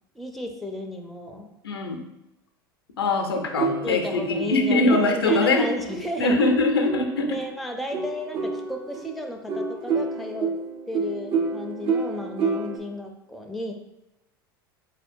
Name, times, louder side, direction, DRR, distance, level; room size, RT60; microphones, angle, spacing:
voice 1, 0.1-1.5 3.8-6.4 7.3-10.6 10.9-13.7, left 1 dB, ahead, 3 dB, 0.5 m, -33 dB
voice 2, 1.6-2.0 3.0-5.7 6.2-7.4, left 3 dB, 85° left, 4 dB, 0.5 m, -22 dB
sound 1, 3.6-7.4 7.9-12.8, right 4 dB, 50° right, 0.6 m, -29 dB
4.2 x 2.7 x 2.5 m, 0.92 s
hypercardioid pair, 80°, 12 cm